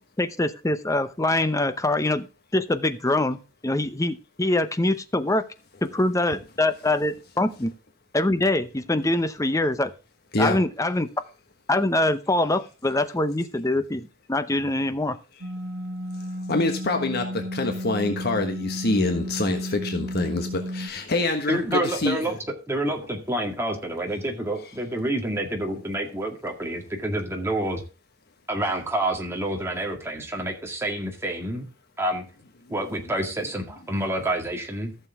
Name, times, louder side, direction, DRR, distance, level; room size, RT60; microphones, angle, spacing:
voice 1, 0.2-2.3 2.5-5.5 5.8-7.7 8.1-9.9 10.4-11.1 11.7-15.2, left 2 dB, 15° left, 11 dB, 0.7 m, -24 dB
sound 1, 15.4-20.9, left 1 dB, 60° right, 1.9 m, -33 dB
voice 2, 16.5-22.2, left 2 dB, 50° left, 5 dB, 1.4 m, -25 dB
voice 3, 21.5-27.8 28.5-31.7 32.0-32.2 32.7-34.9, right 1 dB, 10° right, 1 dB, 2.0 m, -28 dB
14.5 x 6.7 x 3.5 m, 0.34 s
head